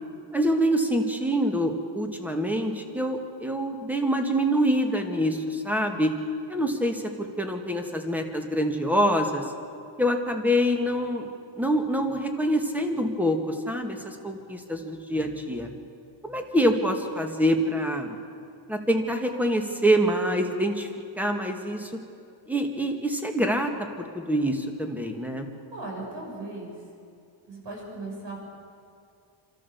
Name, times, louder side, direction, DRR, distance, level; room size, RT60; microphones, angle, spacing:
voice 1, 0.3-6.1 6.5-9.5 10.0-11.3 11.6-15.7 16.2-18.2 18.7-20.9 21.2-21.9 22.5-23.7 24.0-25.5, equal, 5° right, 4 dB, 2.0 m, -25 dB
voice 2, 25.7-26.7 27.5-28.5, right 2 dB, 60° right, -1 dB, 6.4 m, -37 dB
27.5 x 13.5 x 7.2 m, 2.5 s
cardioid pair, 125°, 49 cm